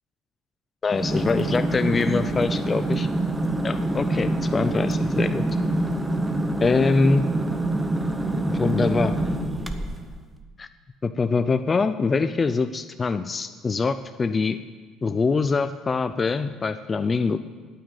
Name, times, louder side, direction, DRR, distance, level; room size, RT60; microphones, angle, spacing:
voice 1, 0.8-3.1 3.6-5.4 6.6-7.3 8.6-9.2 10.6-10.7 11.0-14.6 15.0-17.4, left 4 dB, 25° left, 10 dB, 0.4 m, -24 dB
sound 1, 0.9-10.1, right 1 dB, 10° right, 0.9 m, -25 dB
9.3 x 8.9 x 9.0 m, 1.4 s
cardioid pair, 125°, 0 cm